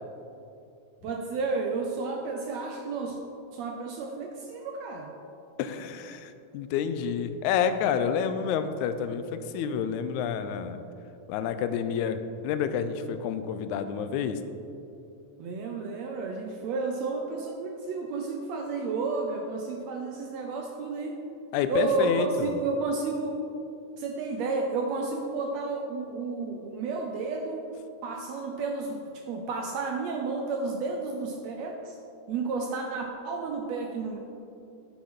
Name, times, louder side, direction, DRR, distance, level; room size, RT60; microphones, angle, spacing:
voice 1, 1.0-3.2 3.5-5.1 15.4-21.2 21.7-23.4 24.0-27.7 28.0-32.0 32.3-34.2, right 3 dB, 75° right, 2 dB, 1.6 m, -31 dB
voice 2, 5.6-10.8 11.3-14.4 21.5-22.3, left 7 dB, 80° left, 9 dB, 1.8 m, -29 dB
10.0 x 8.6 x 3.7 m, 2.7 s
omnidirectional pair, 3.6 m